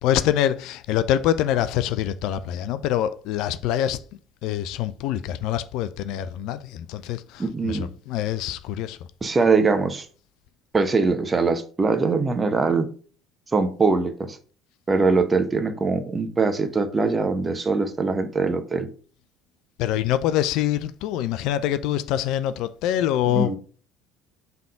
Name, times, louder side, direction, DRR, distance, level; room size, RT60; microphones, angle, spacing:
voice 1, 0.0-4.0 4.4-7.8 8.1-9.0 19.8-23.6, left 11 dB, 60° left, 0.5 m, -25 dB
voice 2, 7.4-7.9 9.2-10.1 10.7-12.9 13.5-14.4 14.9-18.9 23.3-23.6, right 4 dB, 25° right, 1.1 m, -22 dB
5.7 x 3.5 x 5.0 m
figure-of-eight pair, 60°, 0 cm